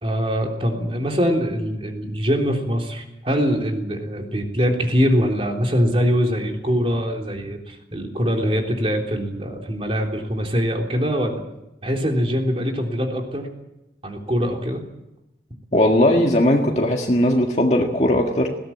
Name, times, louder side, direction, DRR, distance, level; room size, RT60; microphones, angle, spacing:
voice 1, 0.0-11.4 11.8-13.5 14.0-14.8, equal, 30° right, 2 dB, 3.6 m, -23 dB
voice 2, 15.7-18.6, left 1 dB, 40° left, 1 dB, 1.8 m, -18 dB
20.5 x 17.5 x 8.8 m, 0.91 s
head